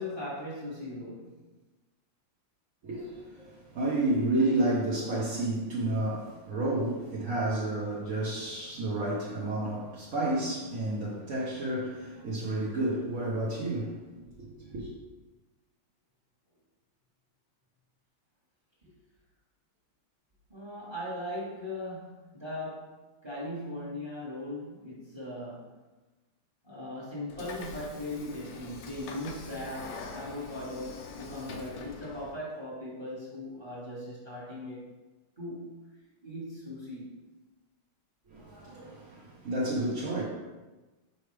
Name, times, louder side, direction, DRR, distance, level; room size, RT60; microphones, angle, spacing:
voice 1, 0.0-1.3 18.8-18.9 20.5-23.0 23.2-25.7 26.6-35.0 35.4-35.7 36.2-37.2, left 1 dB, 15° right, -6 dB, 1.2 m, -39 dB
voice 2, 2.8-14.9 38.3-40.2, right 2 dB, 50° right, -7 dB, 1.1 m, -31 dB
Train / Sliding door, 27.3-32.4, left 5 dB, 75° left, 0.8 m, -44 dB
5.7 x 4.9 x 3.3 m, 1.2 s
omnidirectional pair, 2.4 m